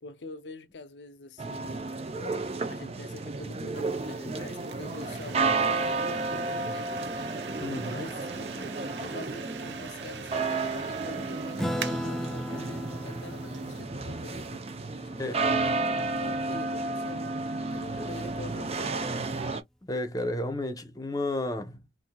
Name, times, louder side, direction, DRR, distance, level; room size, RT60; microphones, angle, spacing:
voice 1, 0.0-1.8 2.7-7.2 7.8-14.7 14.9-17.4 17.7-19.3, left 3 dB, 80° left, 0.7 m, -45 dB
sound 1, 1.4-19.6, right 3 dB, 35° right, 0.7 m, -32 dB
sound 2, 3.7-13.8, right 7 dB, 80° right, 0.6 m, -44 dB
voice 2, 7.6-8.0 15.2-15.4 18.0-18.1 19.8-21.8, left 1 dB, 20° left, 0.8 m, -32 dB
Acoustic guitar / Strum, 11.6-16.4, equal, 5° left, 0.5 m, -36 dB
4.3 x 2.6 x 2.3 m
head